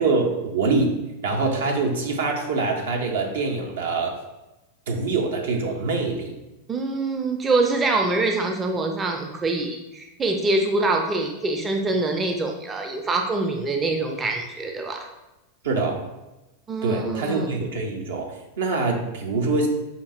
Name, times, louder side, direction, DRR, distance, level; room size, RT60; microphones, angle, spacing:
voice 1, 0.0-1.0 1.2-4.2 4.9-6.3 15.6-16.1 16.8-19.7, right 3 dB, 70° right, 1 dB, 0.7 m, -24 dB
voice 2, 6.7-15.1 16.7-17.5, right 3 dB, 20° right, 3 dB, 0.4 m, -24 dB
5.3 x 2.7 x 2.4 m, 1.0 s
figure-of-eight pair, 90°, 0 cm